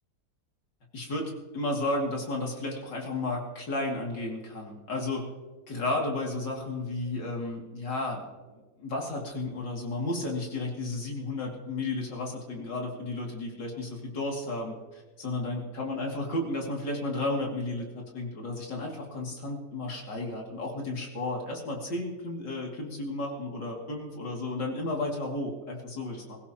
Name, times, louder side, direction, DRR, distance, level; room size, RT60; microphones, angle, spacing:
voice 1, 0.9-5.3 5.7-26.4, left 2 dB, 85° left, -1 dB, 3.3 m, -33 dB
22.5 x 16.0 x 3.0 m, 1.3 s
omnidirectional pair, 1.9 m